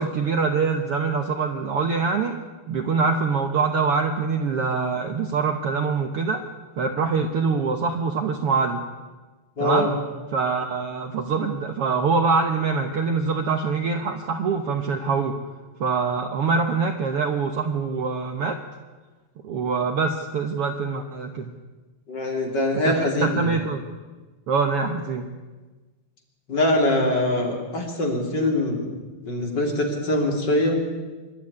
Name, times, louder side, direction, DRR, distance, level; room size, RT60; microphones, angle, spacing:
voice 1, 0.0-2.3 2.7-6.4 6.8-8.8 9.6-9.9 10.3-15.4 15.8-18.6 19.4-21.5 22.8-23.8 24.5-25.3, right 4 dB, 85° right, 6 dB, 1.2 m, -24 dB
voice 2, 9.6-9.9 22.1-23.6 26.5-28.9 29.2-30.8, left 1 dB, 30° left, 1 dB, 3.5 m, -23 dB
26.5 x 12.0 x 9.7 m, 1.3 s
omnidirectional pair, 4.3 m